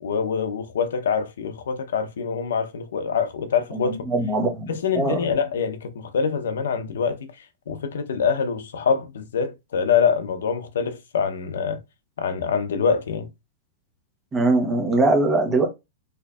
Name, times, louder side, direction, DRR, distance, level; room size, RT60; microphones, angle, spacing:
voice 1, 0.0-4.0 4.7-7.3 7.7-11.8 12.2-13.3, left 6 dB, 85° left, 0.6 m, -25 dB
voice 2, 3.7-5.3 14.3-15.7, right 2 dB, 10° right, 0.8 m, -22 dB
4.4 x 2.6 x 2.3 m
supercardioid pair, 175°, 0 cm